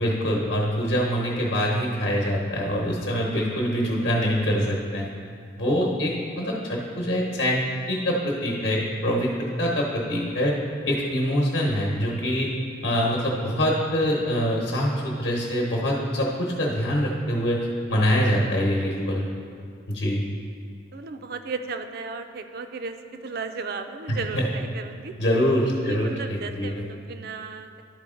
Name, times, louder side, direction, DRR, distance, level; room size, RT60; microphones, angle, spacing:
voice 1, 0.0-5.1 5.6-7.6 7.9-9.3 9.6-10.5 10.9-12.5 12.8-19.3 19.9-20.2 24.1-24.5 25.2-26.8, equal, 70° left, -3 dB, 1.0 m, -24 dB
voice 2, 20.9-23.0 23.2-25.1 25.9-27.7, right 4 dB, 55° right, 7 dB, 0.4 m, -35 dB
11.0 x 4.1 x 3.8 m, 2.2 s
head